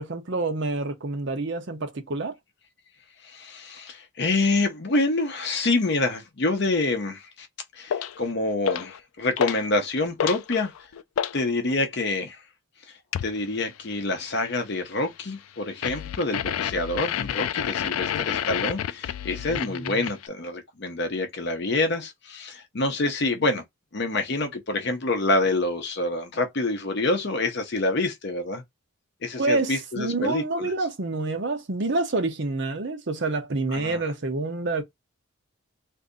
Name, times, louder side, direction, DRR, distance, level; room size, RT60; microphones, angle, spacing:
voice 1, 0.0-2.3 19.5-20.0 29.4-34.8, right 3 dB, 55° right, 0.7 m, -28 dB
voice 2, 3.2-7.5 7.7-10.7 11.3-12.4 12.9-23.6 23.9-28.6 29.2-30.7 33.7-34.0, left 2 dB, 50° left, 0.7 m, -27 dB
sound 1, 7.9-8.2 8.6-9.0 9.4-9.7 10.0-11.4 13.1-13.4 15.8-20.3, left 9 dB, 80° left, 0.3 m, -29 dB
2.6 x 2.5 x 3.6 m
head